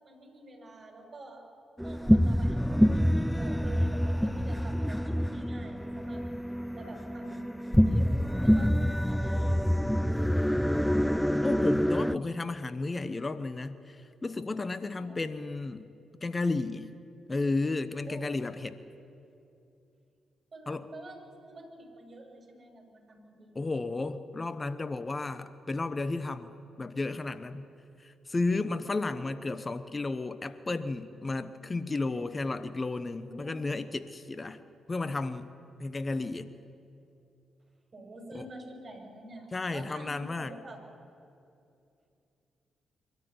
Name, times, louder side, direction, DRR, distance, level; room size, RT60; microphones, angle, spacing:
voice 1, 0.0-1.4 1.8-6.2 6.7-8.7 9.0-9.6 14.9-15.2 18.1-18.4 20.5-23.7 29.0-29.4 33.2-33.7 37.9-40.8, right 1 dB, 45° right, 2 dB, 7.0 m, -47 dB
sound 1, 1.8-12.2, equal, ahead, 0.5 m, -26 dB
voice 2, 11.4-15.9 16.2-16.9 17.3-18.8 20.7-20.9 23.5-26.5 26.8-27.7 28.0-34.6 34.9-35.5 35.8-36.5 38.3-38.4 39.5-40.5, left 3 dB, 35° left, 12 dB, 1.0 m, -33 dB
24.0 x 13.5 x 9.7 m, 2.6 s
hypercardioid pair, 40°, 0 cm